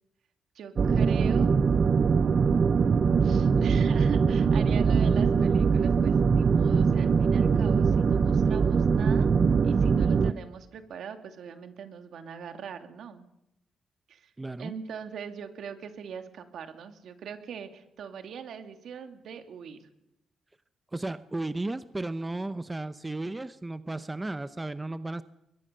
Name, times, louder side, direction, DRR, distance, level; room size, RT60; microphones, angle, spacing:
voice 1, 0.5-1.5 3.2-9.3 9.6-13.3 14.1-14.3 14.6-19.8, right 7 dB, 70° right, 7 dB, 2.6 m, -41 dB
sound 1, 0.8-10.3, right 5 dB, 45° right, 0.7 m, -22 dB
voice 2, 14.4-14.7 20.9-25.2, right 2 dB, 15° right, 12 dB, 0.8 m, -34 dB
22.0 x 22.0 x 6.8 m, 0.84 s
cardioid pair, 110°, 0 cm